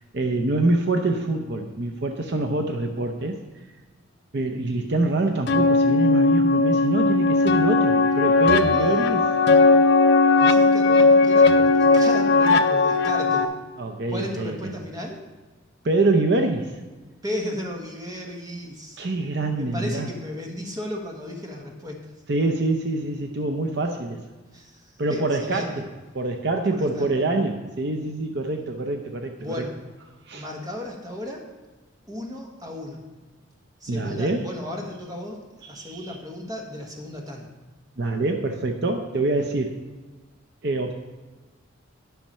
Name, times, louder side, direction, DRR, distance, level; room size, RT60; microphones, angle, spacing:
voice 1, 0.1-3.4 4.3-9.3 13.8-14.7 15.8-16.7 19.0-20.1 22.3-24.2 25.0-25.9 26.1-29.6 30.3-30.5 33.9-34.5 35.6-36.2 38.0-39.7 40.6-40.9, right 2 dB, 55° right, 4 dB, 0.6 m, -25 dB
sound 1, 5.5-13.4, left 3 dB, 50° left, 0.5 m, -18 dB
voice 2, 10.4-13.4 14.1-15.2 17.2-19.0 19.5-22.1 24.5-24.8 25.1-25.7 26.7-27.1 29.4-29.7 30.3-31.4 32.1-33.0 33.8-37.5, left 1 dB, 15° right, 1 dB, 1.3 m, -34 dB
10.5 x 5.8 x 5.5 m, 1.3 s
head